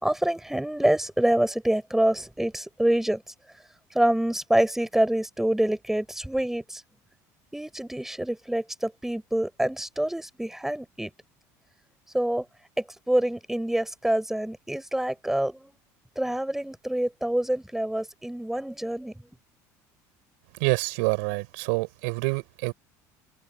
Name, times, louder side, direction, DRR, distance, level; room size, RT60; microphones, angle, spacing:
voice 1, 0.0-3.2 3.9-6.8 7.5-11.1 12.1-12.4 13.1-15.7 16.2-19.1, right 1 dB, 5° right, 4.2 m, -26 dB
voice 2, 20.6-22.7, right 30 dB, 80° right, 5.5 m, -27 dB
supercardioid pair, 90°, 9 cm